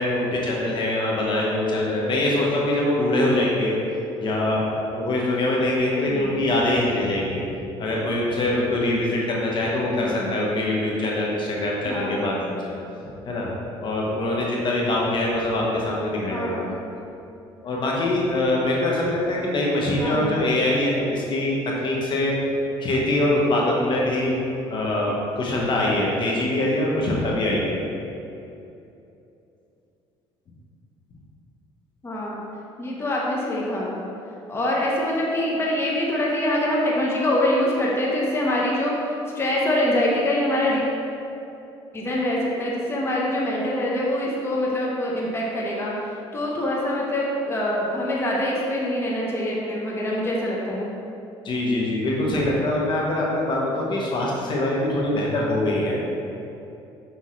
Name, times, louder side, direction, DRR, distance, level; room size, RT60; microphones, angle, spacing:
voice 1, 0.0-3.8 4.2-7.4 7.8-12.7 13.3-13.5 13.8-16.7 17.6-22.4 22.8-24.4 24.7-27.8 51.4-56.0, left 1 dB, 50° left, -3 dB, 1.1 m, -23 dB
voice 2, 6.0-6.4 10.0-10.4 11.8-12.2 16.3-16.7 20.0-20.3 32.0-32.4 32.8-34.0 34.5-38.9 39.3-40.8 41.9-45.9 46.3-50.9, left 1 dB, 25° left, -4 dB, 1.0 m, -24 dB
5.8 x 5.3 x 3.2 m, 2.8 s
cardioid pair, 95°, 11 cm